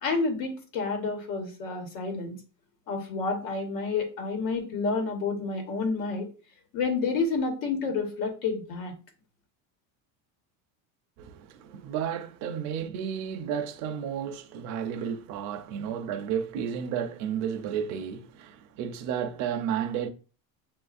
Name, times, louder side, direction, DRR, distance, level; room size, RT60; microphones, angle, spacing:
voice 1, 0.0-2.3 2.9-6.3 6.7-8.9, left 4 dB, 75° left, 1.3 m, -29 dB
voice 2, 11.2-20.1, right 8 dB, 45° right, 0.5 m, -32 dB
7.2 x 2.5 x 2.4 m
cardioid pair, 175°, 41 cm